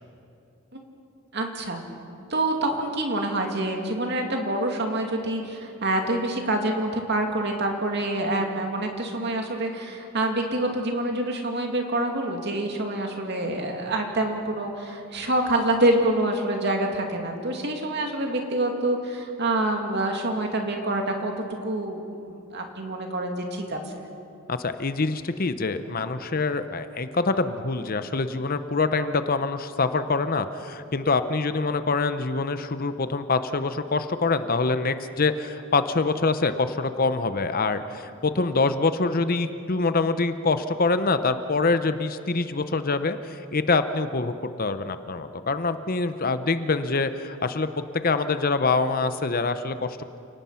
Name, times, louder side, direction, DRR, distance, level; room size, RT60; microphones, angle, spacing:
voice 1, 1.3-1.8 2.3-21.3 21.6-23.8, right 1 dB, 50° right, 3 dB, 2.6 m, -26 dB
voice 2, 24.5-44.3 44.6-47.7 47.9-50.0, left 3 dB, 40° left, 11 dB, 0.8 m, -25 dB
29.0 x 18.5 x 5.8 m, 2.7 s
head